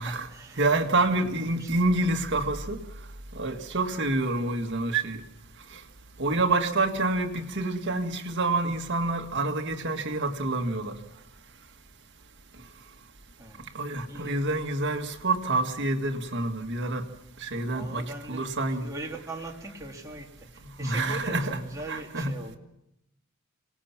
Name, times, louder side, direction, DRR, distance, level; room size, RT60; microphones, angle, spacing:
voice 1, 0.0-0.6 0.9-1.8 6.3-6.5 13.4-13.7 14.0-14.4 17.7-22.6, right 2 dB, 15° right, 2.4 m, -41 dB
voice 2, 0.6-2.8 3.3-5.2 6.2-10.9 13.7-17.0 17.4-18.9 20.8-21.6 21.9-22.4, right 2 dB, 60° right, 1.8 m, -27 dB
26.0 x 19.0 x 5.9 m
head